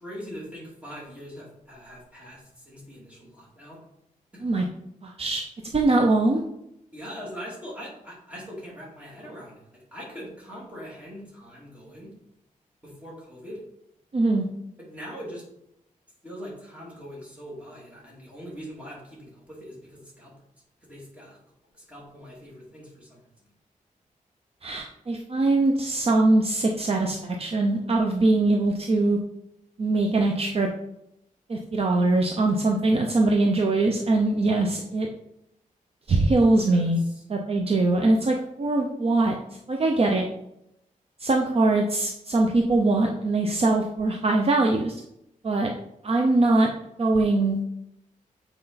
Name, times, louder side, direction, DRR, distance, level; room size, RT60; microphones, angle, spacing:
voice 1, 0.0-3.8 4.3-4.4 6.9-12.1 12.8-13.6 14.8-15.4 16.2-20.3 20.8-21.4 21.7-23.2 36.6-37.2, equal, 10° right, -5 dB, 2.7 m, -42 dB
voice 2, 5.0-5.4 5.7-6.4 14.1-14.5 24.6-29.2 29.8-30.7 31.5-35.1 36.1-37.0 37.3-39.3 39.7-40.2 41.2-45.0 45.4-45.7 46.0-46.7 47.0-47.7, right 2 dB, 45° right, 2 dB, 0.6 m, -22 dB
7.8 x 4.4 x 4.1 m, 0.81 s
wide cardioid pair, 155°, 14 cm